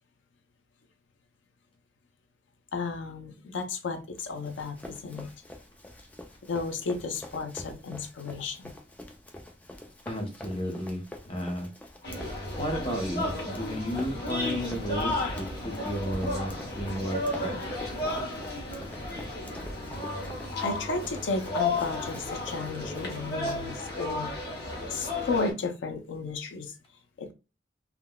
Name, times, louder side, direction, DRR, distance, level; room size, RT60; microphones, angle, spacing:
voice 1, 2.7-5.3 6.5-8.7 20.6-26.8 27.2-27.3, left 4 dB, 90° left, 0.5 m, -33 dB
Run, 4.1-24.0, left 1 dB, 10° left, 0.4 m, -47 dB
voice 2, 10.1-11.7 12.6-17.7, equal, 30° left, 0.8 m, -33 dB
sound 1, 12.0-25.5, left 2 dB, 60° left, 1.1 m, -33 dB
3.6 x 2.2 x 2.2 m
head